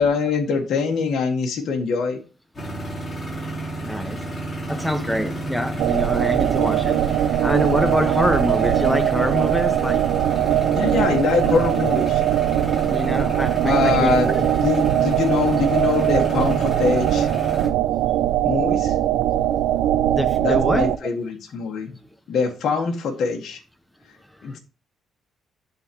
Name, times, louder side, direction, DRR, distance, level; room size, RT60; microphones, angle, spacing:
voice 1, 0.0-2.2 10.7-12.2 13.6-17.3 18.4-18.9 20.4-21.9 22.3-23.6 24.4-24.6, left 5 dB, 70° left, 1.4 m, -23 dB
sound 1, 2.5-17.7, right 2 dB, 25° left, 4.0 m, -31 dB
voice 2, 3.8-4.2 4.7-7.0 7.4-10.1 12.9-14.4 20.1-20.9 24.4-24.6, equal, ahead, 1.1 m, -25 dB
sound 2, 5.8-21.0, right 12 dB, 90° right, 0.4 m, -21 dB
11.5 x 4.0 x 2.9 m
cardioid pair, 90°, 0 cm